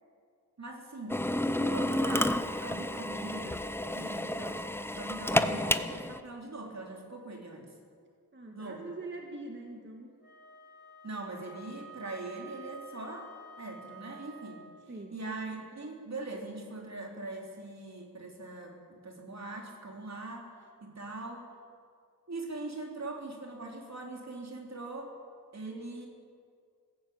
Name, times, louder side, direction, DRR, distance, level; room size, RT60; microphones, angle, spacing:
voice 1, 0.6-1.2 1.6-4.6 4.9-7.7 8.5-8.8 11.0-14.6 15.1-20.5 20.8-21.5 22.3-25.2 25.5-26.1, right 2 dB, 50° right, 1 dB, 3.9 m, -41 dB
Drill, 1.1-6.2, left 1 dB, 5° left, 0.8 m, -30 dB
voice 2, 2.9-3.4 8.3-10.1 14.9-15.2, right 2 dB, 35° right, 2 dB, 1.8 m, -43 dB
Wind instrument woodwind instrument, 10.2-14.8, right 2 dB, 30° left, 4.5 m, -50 dB
20.5 x 16.0 x 8.7 m, 2.2 s
wide cardioid pair, 110°, 34 cm